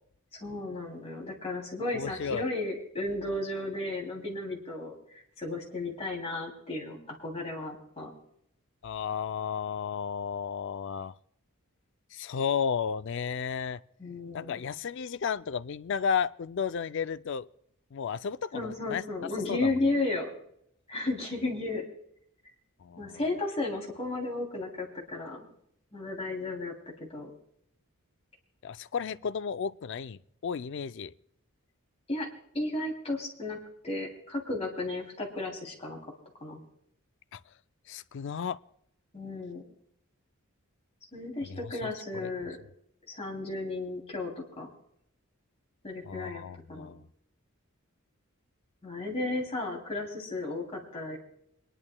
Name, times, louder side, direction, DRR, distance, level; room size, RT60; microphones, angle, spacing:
voice 1, 0.3-4.9 5.4-8.1 14.0-14.6 18.5-20.3 20.9-21.8 23.0-25.5 25.9-26.7 27.0-27.3 32.1-32.3 32.5-33.6 33.8-36.0 36.4-36.6 39.1-39.6 41.1-42.6 43.1-44.7 45.8-46.4 46.7-46.9 48.8-51.2, left 2 dB, 30° left, 2.8 m, -34 dB
voice 2, 1.9-2.5 8.8-11.1 12.1-13.8 14.3-17.5 17.9-19.0 19.5-19.7 22.8-23.2 28.6-31.1 37.3-37.4 37.9-38.6 41.4-42.3 46.0-47.0, left 6 dB, 55° left, 0.4 m, -33 dB
27.0 x 11.0 x 2.2 m
head